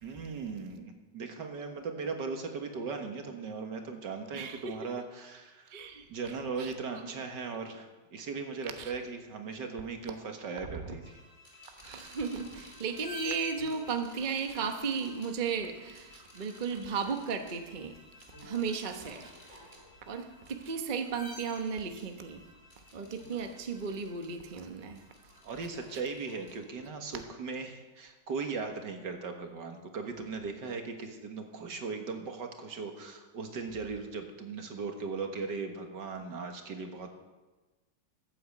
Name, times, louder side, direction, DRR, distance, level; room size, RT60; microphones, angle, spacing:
voice 1, 0.0-5.8 6.1-11.2 25.4-37.1, right 4 dB, 70° right, 4 dB, 2.1 m, -38 dB
voice 2, 4.3-4.7 5.7-6.0 6.6-6.7 11.8-17.9 18.4-19.3 20.1-22.4 22.9-25.0, right 5 dB, 30° right, 5 dB, 1.0 m, -35 dB
sound 1, 11.0-27.0, left 1 dB, 40° left, 3.3 m, -52 dB
13.5 x 8.6 x 7.9 m, 1.2 s
omnidirectional pair, 2.0 m